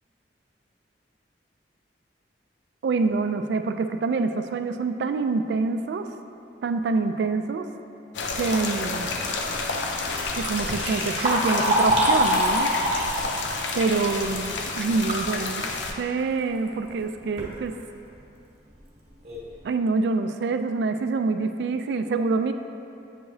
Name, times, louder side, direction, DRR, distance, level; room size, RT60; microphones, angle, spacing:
voice 1, 2.8-6.1 6.6-7.7 8.4-9.1 10.4-12.7 13.8-15.7 16.0-17.8 19.6-22.5, right 4 dB, 65° right, 8 dB, 0.3 m, -26 dB
sound 1, 8.1-15.9, left 3 dB, 80° left, 0.5 m, -30 dB
Liquid, 10.2-15.3 15.7-15.8 16.7-16.8 17.2-17.5 18.1-18.2 18.7-18.8 19.2-19.5, equal, 35° right, 1.0 m, -25 dB
8.1 x 4.8 x 2.7 m, 2.8 s
head